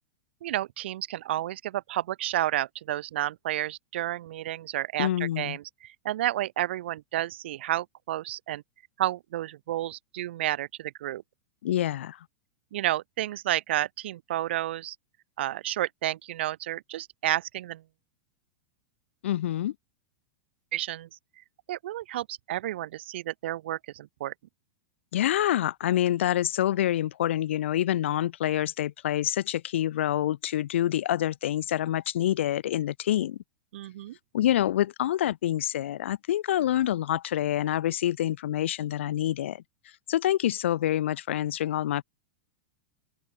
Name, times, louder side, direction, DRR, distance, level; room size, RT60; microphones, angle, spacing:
voice 1, 0.4-8.6 9.0-11.2 12.7-14.9 15.4-17.8 20.7-21.1 21.7-24.3 33.7-34.2, right 14 dB, 70° right, 3.5 m, -31 dB
voice 2, 5.0-5.6 11.6-12.2 19.2-19.7 25.1-33.4 34.3-39.6 40.1-42.0, left 12 dB, 80° left, 2.8 m, -27 dB
supercardioid pair, 170°, 6 cm